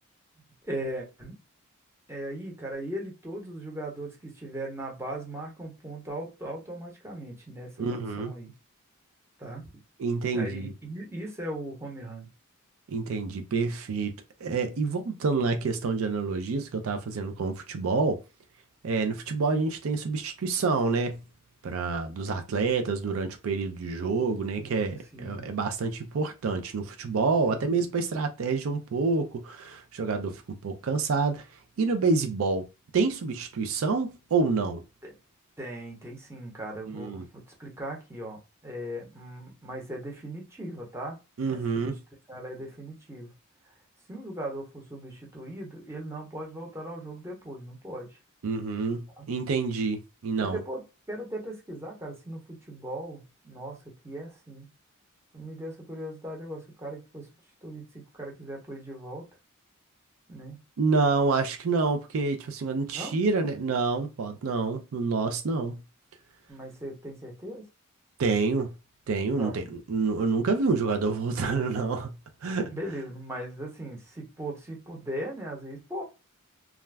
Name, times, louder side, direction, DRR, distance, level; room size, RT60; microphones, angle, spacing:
voice 1, 0.6-1.4 2.1-8.5 9.4-9.7 10.3-12.3 24.6-25.5 27.5-27.9 35.0-35.1 35.6-41.2 41.5-42.0 42.3-43.3 44.1-48.2 49.2-49.3 50.4-50.8 51.1-54.7 55.3-57.3 57.6-59.3 60.3-60.6 62.9-63.2 66.5-67.7 69.4-69.5 72.7-76.0, right 1 dB, 10° right, 0.8 m, -38 dB
voice 2, 7.8-8.3 10.0-10.7 12.9-14.1 14.4-18.2 18.8-21.2 21.6-31.5 31.8-32.7 32.9-34.8 36.9-37.2 41.4-42.0 48.4-50.6 60.8-65.8 68.2-68.7 69.1-72.1 72.4-72.7, right 4 dB, 70° right, 0.4 m, -28 dB
2.4 x 2.2 x 3.2 m
head